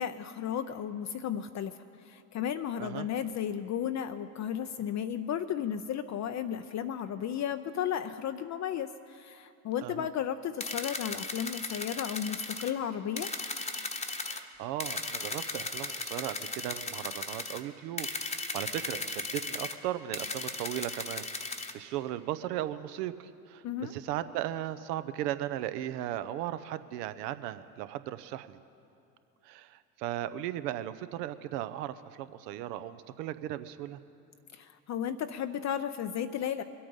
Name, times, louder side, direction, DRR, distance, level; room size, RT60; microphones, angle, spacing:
voice 1, 0.0-13.3 23.6-23.9 34.5-36.6, left 9 dB, 35° left, 9 dB, 0.5 m, -34 dB
sound 1, 10.6-12.7 13.2-14.4 14.8-17.6 18.0-19.8 20.1-21.7, left 3 dB, 15° left, 1.0 m, -37 dB
voice 2, 14.2-28.6 29.4-34.0, right 13 dB, 70° right, 13 dB, 0.8 m, -37 dB
23.0 x 8.7 x 5.5 m, 2.9 s
hypercardioid pair, 65°, 50 cm